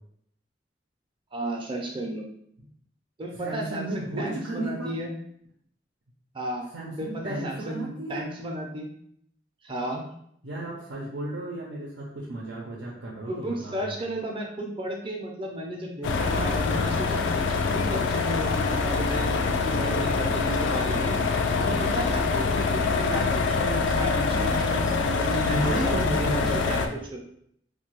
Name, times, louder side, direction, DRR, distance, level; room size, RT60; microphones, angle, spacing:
voice 1, 1.3-2.2 3.2-5.1 6.3-6.7 7.0-8.9 9.6-10.1 13.3-19.3 19.6-27.2, right 1 dB, 25° right, 1 dB, 0.5 m, -33 dB
voice 2, 3.4-4.9 6.7-8.2 10.4-13.9 21.8-22.0 25.5-26.5, right 1 dB, 90° right, -3 dB, 0.6 m, -34 dB
sound 1, 16.0-26.9, left 4 dB, 75° left, 0.3 m, -25 dB
3.1 x 2.2 x 3.0 m, 0.70 s
head